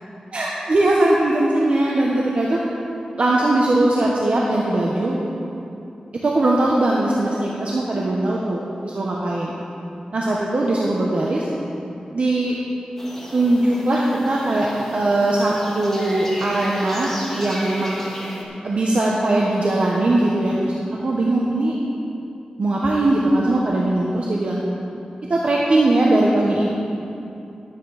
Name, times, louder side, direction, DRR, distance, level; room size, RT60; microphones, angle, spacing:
voice 1, 0.3-2.6 3.2-5.2 6.2-9.5 10.1-11.5 12.1-12.5 13.3-17.1 17.4-18.0 18.6-20.7 21.0-21.7 22.6-24.6 25.3-26.7, right 2 dB, 60° right, -4 dB, 1.1 m, -20 dB
sound 1, 13.0-18.4, equal, 10° left, 2.1 m, -35 dB
12.0 x 8.9 x 4.9 m, 2.7 s
wide cardioid pair, 95°, 2 cm